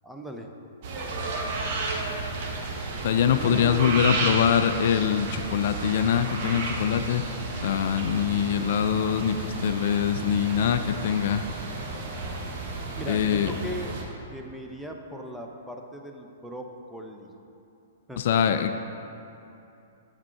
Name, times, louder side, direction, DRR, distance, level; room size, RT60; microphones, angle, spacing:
voice 1, 0.0-0.5 3.3-4.2 13.0-14.0 14.3-17.3 18.1-18.2, equal, 5° right, 1 dB, 0.6 m, -38 dB
sound 1, 0.8-14.0, right 3 dB, 50° right, 1.1 m, -32 dB
voice 2, 3.0-7.2 7.6-11.4 13.1-13.5 18.2-18.7, left 8 dB, 55° left, 9 dB, 0.3 m, -23 dB
7.4 x 5.9 x 4.4 m, 2.8 s
figure-of-eight pair, 110°, 0 cm